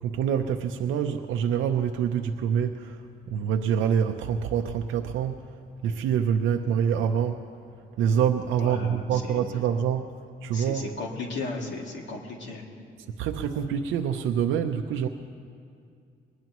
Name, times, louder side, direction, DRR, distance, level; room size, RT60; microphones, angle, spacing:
voice 1, 0.0-5.5 5.8-7.5 8.0-10.1 10.4-10.9 13.2-15.1, right 8 dB, 90° right, 4 dB, 0.7 m, -26 dB
voice 2, 8.6-9.4 10.5-12.6, left 3 dB, 65° left, -1 dB, 2.5 m, -35 dB
21.5 x 20.0 x 3.1 m, 2.3 s
cardioid pair, 90°, 20 cm